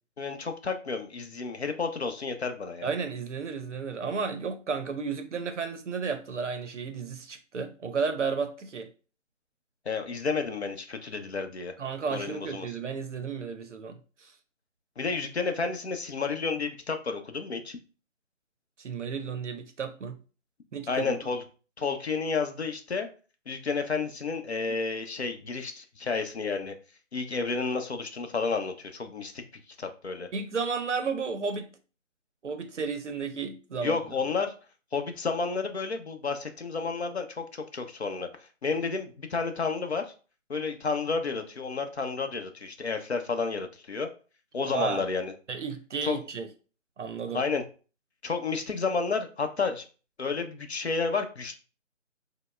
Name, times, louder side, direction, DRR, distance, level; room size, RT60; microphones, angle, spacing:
voice 1, 0.2-2.9 9.9-11.7 12.1-12.7 15.0-17.8 20.9-21.4 21.8-23.1 23.5-26.7 27.1-29.4 29.8-30.3 33.8-34.5 34.9-38.3 38.6-40.0 40.5-44.1 44.5-45.3 46.1-46.2 47.3-47.6 48.2-49.8 50.2-51.5, left 4 dB, 60° left, 0.6 m, -31 dB
voice 2, 2.8-8.9 11.8-14.3 18.8-20.2 20.7-21.2 30.3-31.7 32.4-34.0 44.6-45.0 45.5-46.5 47.0-47.4, right 5 dB, 70° right, 0.6 m, -33 dB
5.1 x 2.0 x 2.2 m
figure-of-eight pair, 170°, 38 cm